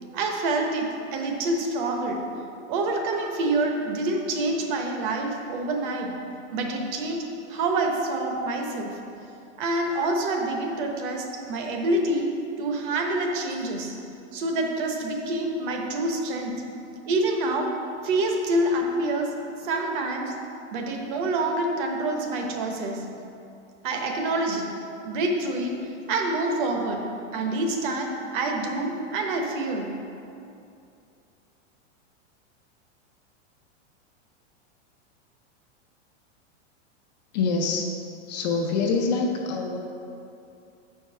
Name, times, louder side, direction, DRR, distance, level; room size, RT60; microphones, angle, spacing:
voice 1, 0.1-2.2 2.7-6.2 6.5-7.2 7.5-9.0 9.6-12.3 12.6-13.9 14.3-16.6 17.1-17.7 18.0-19.3 19.6-20.3 20.7-23.1 23.8-24.7 25.0-25.8 26.1-27.0 27.3-29.9, right 2 dB, 40° right, 2 dB, 0.9 m, -27 dB
voice 2, 37.3-38.0 38.3-39.8, left 4 dB, 35° left, 1 dB, 0.5 m, -25 dB
7.0 x 4.6 x 5.6 m, 2.6 s
supercardioid pair, 165°, 37 cm